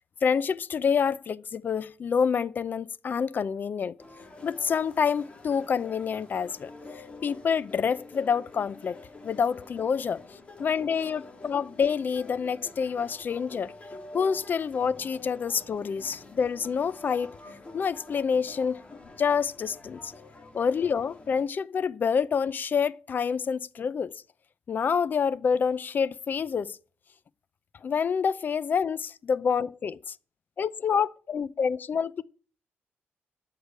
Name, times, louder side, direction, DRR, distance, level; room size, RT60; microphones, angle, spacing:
voice 1, 0.2-3.9 4.4-9.0 9.2-10.2 10.6-13.7 14.1-17.4 17.7-18.8 19.2-20.1 20.5-24.1 24.7-26.8 27.8-30.2 30.6-32.2, left 6 dB, 50° left, 0.5 m, -27 dB
sound 1, 4.0-21.4, left 2 dB, 25° left, 2.3 m, -47 dB
13.0 x 4.9 x 8.6 m
cardioid pair, 110°, 4 cm